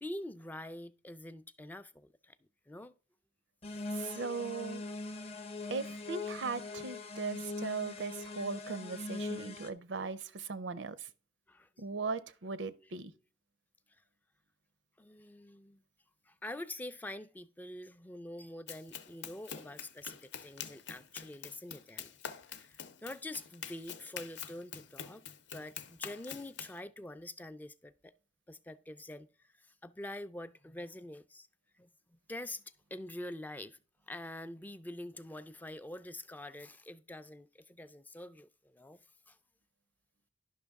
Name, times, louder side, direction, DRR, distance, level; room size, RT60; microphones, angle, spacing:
voice 1, 0.0-2.4 2.7-2.9 3.7-3.8 11.5-11.7 15.0-15.8 16.3-22.1 22.5-25.3 25.5-28.1 28.5-31.5 31.8-33.8 34.1-39.0 39.3-39.4, left 1 dB, 10° left, 0.3 m, -46 dB
sound 1, 3.6-9.7, left 3 dB, 35° left, 0.7 m, -41 dB
voice 2, 3.9-4.8 5.7-11.1 11.8-13.1, right 4 dB, 90° right, 0.6 m, -38 dB
Run, 18.7-26.8, left 8 dB, 75° left, 0.7 m, -46 dB
11.0 x 5.8 x 3.5 m
head